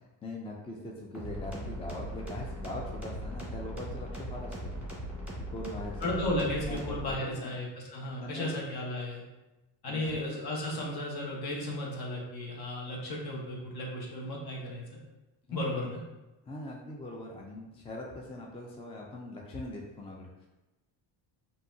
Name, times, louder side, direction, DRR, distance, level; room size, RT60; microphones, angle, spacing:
voice 1, 0.2-4.7 5.5-7.6 8.0-8.6 9.9-10.3 15.5-15.9 16.5-20.5, left 1 dB, 15° left, -1 dB, 0.4 m, -42 dB
sound 1, 1.1-7.1, equal, 5° right, 1.2 m, -39 dB
voice 2, 6.0-9.2 9.8-14.8 15.5-16.0, left 1 dB, 50° left, -2 dB, 1.3 m, -34 dB
5.4 x 2.8 x 2.7 m, 1.0 s
cardioid pair, 120°, 47 cm